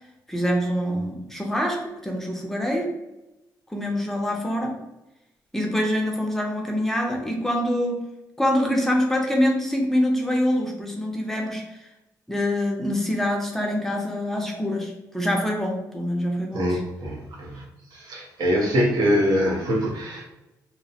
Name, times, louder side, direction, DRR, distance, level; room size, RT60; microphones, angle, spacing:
voice 1, 0.3-2.9 3.7-4.8 5.5-8.0 8.4-11.8 12.3-16.8, left 1 dB, 5° left, 1 dB, 0.4 m, -25 dB
voice 2, 16.5-17.6 17.9-20.2, equal, 85° right, -2 dB, 0.8 m, -24 dB
2.7 x 2.0 x 2.7 m, 0.94 s
cardioid pair, 130°, 7 cm